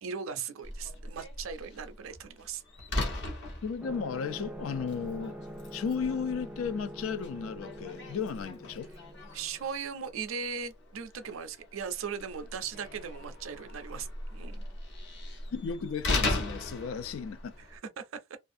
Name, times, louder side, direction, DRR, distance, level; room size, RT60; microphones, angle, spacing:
voice 1, 0.0-2.6 9.3-14.6 17.6-18.4, right 6 dB, 70° right, 0.5 m, -38 dB
Slam, 0.6-17.8, left 2 dB, 55° left, 0.9 m, -39 dB
voice 2, 3.6-5.4 5.7-8.9 15.5-17.5, left 6 dB, 70° left, 0.4 m, -34 dB
sound 1, 3.8-10.1, equal, 5° right, 0.3 m, -45 dB
2.4 x 2.4 x 2.5 m
head